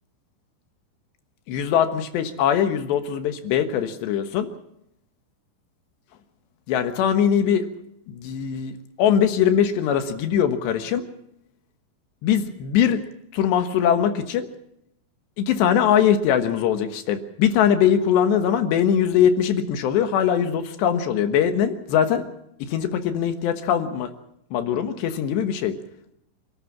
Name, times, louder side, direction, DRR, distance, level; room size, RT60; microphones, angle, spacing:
voice 1, 1.5-4.5 6.7-7.7 8.1-11.0 12.2-13.0 13.3-14.5 15.4-22.2 22.6-24.1 24.5-25.7, left 8 dB, 70° left, 9 dB, 3.2 m, -21 dB
28.5 x 13.0 x 7.3 m, 0.77 s
omnidirectional pair, 5.6 m